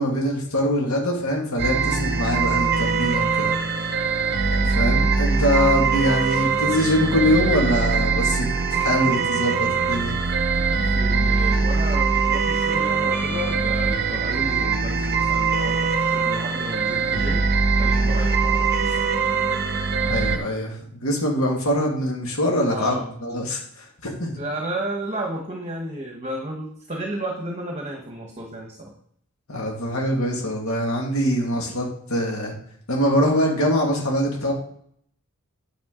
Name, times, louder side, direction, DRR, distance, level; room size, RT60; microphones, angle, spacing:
voice 1, 0.0-3.6 4.5-10.2 20.0-22.9 23.2-24.4 29.5-32.5 32.9-34.5, equal, 65° left, -1 dB, 2.1 m, -23 dB
sound 1, 1.6-20.4, right 4 dB, 45° right, 0.8 m, -22 dB
voice 2, 10.8-17.5 17.8-19.1 22.7-23.4 24.4-28.9, right 1 dB, 30° right, 1 dB, 1.1 m, -32 dB
9.2 x 7.1 x 3.8 m, 0.64 s
head